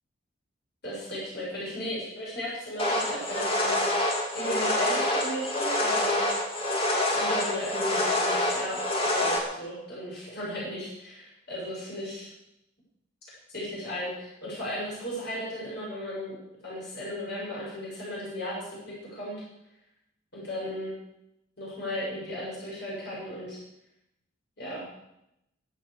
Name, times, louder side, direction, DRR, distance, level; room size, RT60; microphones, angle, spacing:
voice 1, 0.8-4.0 4.3-6.2 7.1-8.9 9.1-12.3 13.5-16.4 16.6-19.4 20.3-21.0 21.6-23.6 24.6-24.9, equal, 55° left, -6 dB, 7.5 m, -35 dB
sound 1, 2.8-9.4, left 1 dB, 30° left, 2.7 m, -26 dB
23.0 x 8.3 x 6.9 m, 0.83 s
head